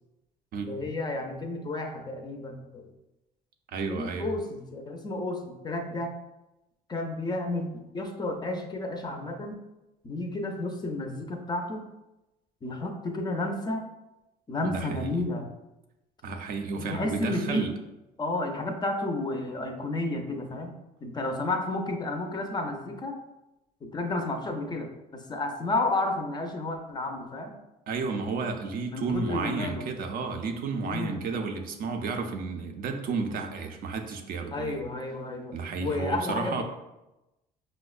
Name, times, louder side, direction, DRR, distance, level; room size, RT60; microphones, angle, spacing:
voice 1, 0.6-2.9 3.9-6.1 6.9-9.6 10.0-11.9 12.6-13.8 14.5-15.5 16.8-17.7 18.2-20.7 21.0-23.2 23.8-27.6 28.9-29.9 30.8-31.2 34.5-36.6, left 2 dB, 25° left, 4 dB, 0.4 m, -32 dB
voice 2, 3.7-4.3 14.6-15.2 16.2-17.7 27.9-34.8 35.5-36.6, right 4 dB, 60° right, 5 dB, 0.4 m, -32 dB
5.1 x 2.1 x 2.3 m, 0.96 s
cardioid pair, 110°, 17 cm